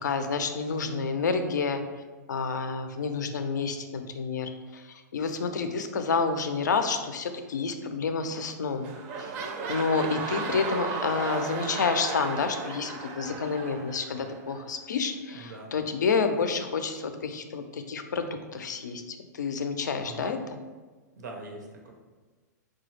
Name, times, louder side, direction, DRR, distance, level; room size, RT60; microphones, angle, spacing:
voice 1, 0.0-1.8 2.3-8.9 9.2-9.3 9.7-20.4, left 5 dB, 80° left, 7 dB, 0.4 m, -29 dB
sound 1, 8.3-8.5 8.8-14.6 15.3-15.4, right 4 dB, 40° right, 0.5 m, -35 dB
voice 2, 15.3-15.7 20.0-20.4 21.2-21.9, right 2 dB, 75° right, 1 dB, 0.7 m, -42 dB
4.1 x 2.2 x 3.1 m, 1.3 s
hypercardioid pair, 110°, 10 cm